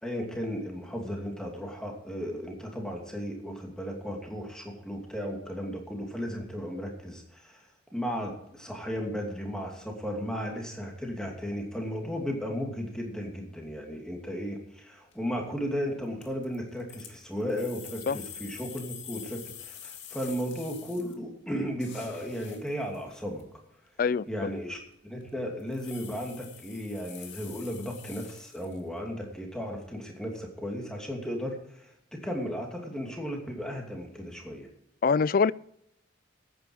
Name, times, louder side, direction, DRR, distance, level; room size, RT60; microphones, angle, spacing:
voice 1, 0.0-23.4 24.3-34.7, equal, 5° left, 2.6 m, -35 dB
sound 1, 15.1-15.4 16.0-21.1 21.5-23.4 24.0-24.1 24.5-24.9 25.2-25.3 25.6-29.0, left 9 dB, 70° left, 2.0 m, -46 dB
voice 2, 35.0-35.5, left 5 dB, 45° left, 0.3 m, -23 dB
13.5 x 9.4 x 4.8 m
head